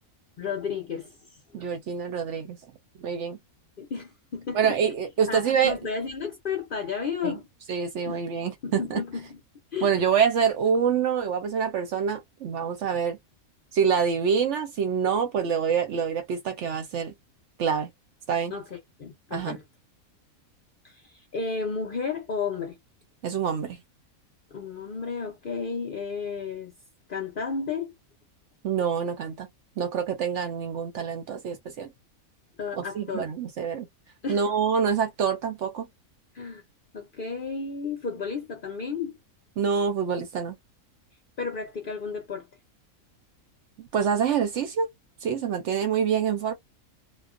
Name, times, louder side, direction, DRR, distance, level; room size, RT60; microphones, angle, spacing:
voice 1, 0.4-1.1 1.6-1.7 3.8-4.8 5.3-7.5 8.0-8.2 8.6-9.4 9.7-9.9 18.5-19.6 20.8-22.8 24.5-26.7 27.1-27.9 32.6-33.3 34.2-34.5 36.3-36.6 36.9-39.2 41.4-42.5, left 5 dB, 55° left, 0.6 m, -33 dB
voice 2, 1.5-2.6 3.0-3.4 4.5-5.7 7.2-7.4 7.7-9.0 9.8-13.2 13.7-17.1 17.6-17.9 18.3-18.5 19.3-19.6 23.2-23.8 28.6-29.5 29.8-31.9 32.8-33.9 34.3-35.9 39.6-40.6 43.9-44.9 45.2-46.5, right 7 dB, 65° right, 0.8 m, -26 dB
2.3 x 2.2 x 2.4 m
omnidirectional pair, 1.5 m